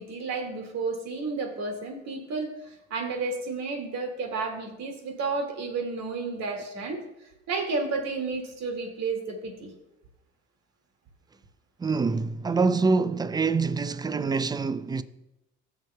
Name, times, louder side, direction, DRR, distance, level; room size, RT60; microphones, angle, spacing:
voice 1, 0.0-7.0 7.5-9.7, right 4 dB, 55° right, 2.1 m, -32 dB
voice 2, 11.8-15.0, right 4 dB, 15° right, 0.4 m, -25 dB
16.5 x 6.7 x 2.2 m
supercardioid pair, 75°, 31 cm